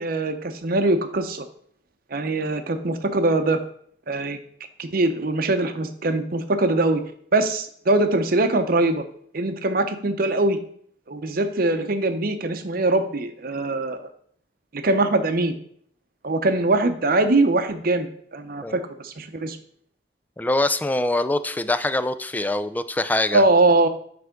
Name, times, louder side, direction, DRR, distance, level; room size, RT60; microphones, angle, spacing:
voice 1, 0.0-1.4 2.1-3.6 4.1-4.4 4.8-7.0 7.3-9.0 9.3-10.6 11.1-14.1 14.7-15.5 16.2-19.6 23.3-23.9, right 2 dB, 55° right, 8 dB, 0.7 m, -22 dB
voice 2, 20.4-23.4, left 2 dB, 10° left, 12 dB, 0.3 m, -24 dB
7.9 x 3.4 x 5.1 m, 0.62 s
head